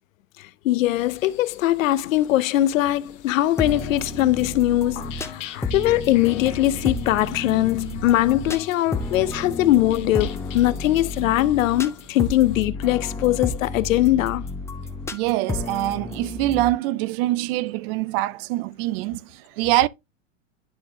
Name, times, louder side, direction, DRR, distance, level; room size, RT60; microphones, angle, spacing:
voice 1, 0.4-14.5, left 15 dB, 85° left, 0.6 m, -21 dB
sound 1, 0.8-12.6, left 6 dB, 45° left, 1.5 m, -51 dB
sound 2, 3.6-16.7, left 3 dB, 5° left, 0.4 m, -31 dB
sound 3, 5.0-14.4, left 10 dB, 70° left, 1.3 m, -41 dB
voice 2, 15.1-19.9, right 16 dB, 50° right, 0.4 m, -24 dB
11.0 x 3.7 x 3.0 m
hypercardioid pair, 120°, 38 cm